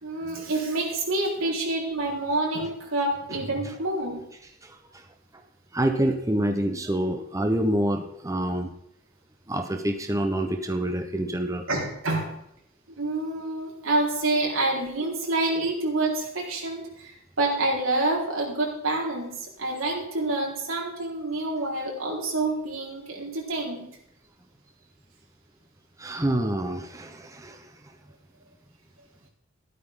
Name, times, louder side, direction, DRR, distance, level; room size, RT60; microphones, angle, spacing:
voice 1, 0.0-4.2 11.7-12.4 13.0-23.9, right 2 dB, 90° right, -2 dB, 4.6 m, -27 dB
voice 2, 4.6-5.0 5.7-8.7 9.5-11.7 26.0-27.9, right 1 dB, 15° right, 5 dB, 1.0 m, -27 dB
14.5 x 12.5 x 3.8 m, 0.77 s
head